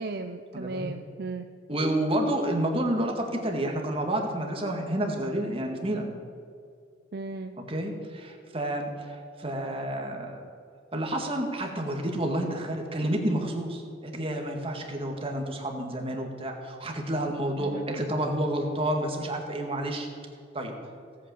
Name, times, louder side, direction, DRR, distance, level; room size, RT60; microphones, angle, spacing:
voice 1, 0.0-1.5 7.1-7.5 17.6-17.8, right 3 dB, 55° right, 7 dB, 0.6 m, -35 dB
voice 2, 0.5-0.9 1.7-6.1 7.5-10.4 10.9-20.1 20.5-20.7, right 1 dB, 30° right, 2 dB, 2.1 m, -30 dB
17.5 x 8.8 x 7.8 m, 2.4 s
head